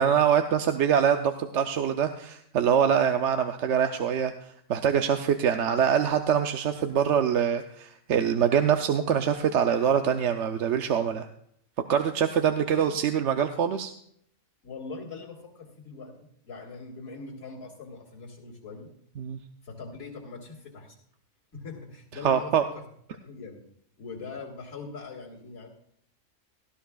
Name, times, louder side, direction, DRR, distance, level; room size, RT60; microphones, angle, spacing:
voice 1, 0.0-4.3 4.7-11.3 11.9-13.9 19.2-19.4 22.2-22.6, right 8 dB, 65° right, 7 dB, 0.9 m, -24 dB
voice 2, 14.6-18.9 19.6-21.0 21.5-22.8 23.2-23.6 24.0-25.7, left 4 dB, 80° left, -4 dB, 2.4 m, -42 dB
17.5 x 12.5 x 2.3 m, 0.69 s
omnidirectional pair, 1.4 m